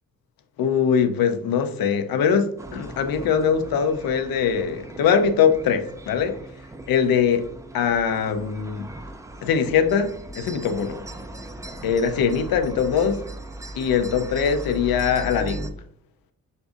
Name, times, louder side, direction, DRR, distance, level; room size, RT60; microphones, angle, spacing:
voice 1, 0.6-6.4 6.9-8.9 9.4-11.0 11.8-13.2 13.7-15.7, left 7 dB, 85° left, 0.6 m, -22 dB
sound 1, 2.6-15.7, right 1 dB, 10° right, 0.4 m, -38 dB
6.4 x 2.6 x 2.4 m
cardioid pair, 105°, 34 cm